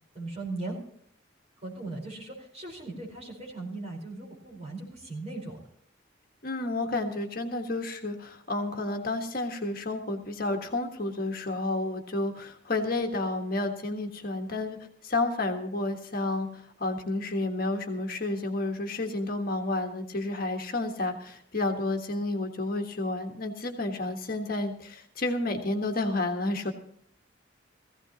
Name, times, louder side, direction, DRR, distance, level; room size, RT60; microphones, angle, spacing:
voice 1, 0.1-0.8 1.6-5.6, right 2 dB, 35° right, 0 dB, 4.6 m, -38 dB
voice 2, 6.4-26.7, left 2 dB, 50° left, 3 dB, 1.5 m, -31 dB
17.5 x 15.5 x 3.0 m, 0.62 s
head